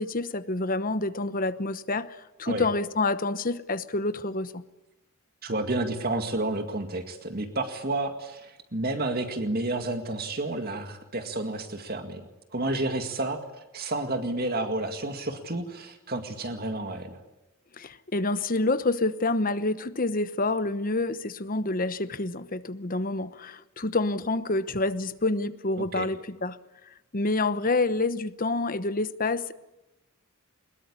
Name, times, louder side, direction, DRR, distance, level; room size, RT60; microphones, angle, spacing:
voice 1, 0.0-4.6 17.8-26.6 27.1-29.5, left 2 dB, 40° left, 1.0 m, -28 dB
voice 2, 5.4-12.2 12.5-13.4 13.7-17.2 25.8-26.1, right 2 dB, 45° right, 2.1 m, -30 dB
22.5 x 21.0 x 9.9 m
head